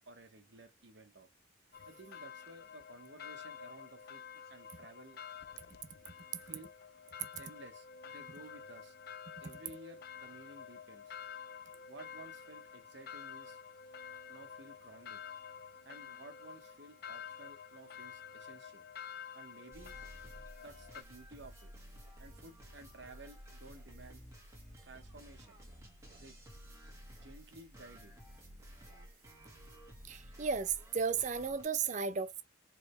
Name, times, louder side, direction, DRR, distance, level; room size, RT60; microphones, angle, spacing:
voice 1, 0.1-1.3 1.9-4.2 4.5-5.2 6.4-6.7 7.4-9.0 9.4-11.2 11.9-13.6 14.3-15.2 15.8-18.9 19.3-20.0 20.6-21.7 22.2-24.2 24.8-25.6 26.2-26.5 26.8-26.9 27.2-28.1, right 2 dB, 55° right, 1.0 m, -54 dB
sound 1, 1.7-21.0, left 7 dB, 50° left, 0.4 m, -50 dB
sound 2, 19.7-31.6, equal, 15° right, 1.6 m, -54 dB
voice 2, 30.1-32.4, right 5 dB, 35° right, 0.5 m, -34 dB
4.8 x 3.2 x 3.2 m
head